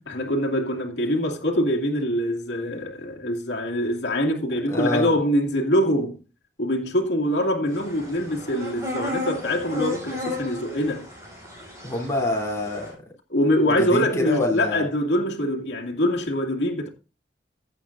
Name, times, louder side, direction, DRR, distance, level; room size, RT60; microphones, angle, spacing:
voice 1, 0.1-6.2 6.6-11.1 13.3-16.9, equal, 80° left, 2.4 m, -24 dB
voice 2, 4.7-5.1 11.8-12.9 13.8-14.9, left 2 dB, 15° left, 3.3 m, -26 dB
sound 1, 7.7-12.9, left 1 dB, 20° right, 6.6 m, -34 dB
15.5 x 8.2 x 2.6 m
head